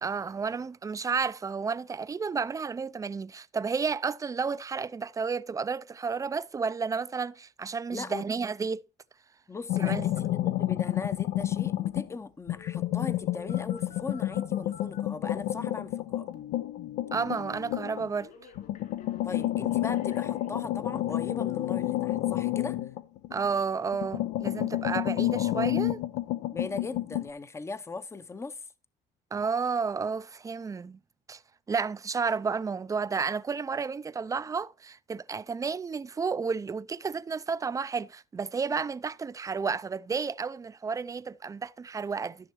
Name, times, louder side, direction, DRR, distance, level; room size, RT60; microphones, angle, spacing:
voice 1, 0.0-8.8 9.8-10.0 17.1-18.3 23.3-26.0 29.3-31.0 31.3-31.4 31.7-42.4, right 5 dB, 20° right, 0.4 m, -31 dB
voice 2, 7.9-8.3 9.5-16.3 19.2-22.8 26.5-28.7, left 3 dB, 15° left, 0.7 m, -39 dB
sound 1, 9.7-12.1 12.5-18.1 18.6-23.6 23.9-27.3, left 14 dB, 85° left, 0.7 m, -30 dB
Telephone, 12.6-20.5 21.1-21.2, left 9 dB, 60° left, 3.3 m, -48 dB
14.0 x 6.4 x 3.0 m
cardioid pair, 110°, 17 cm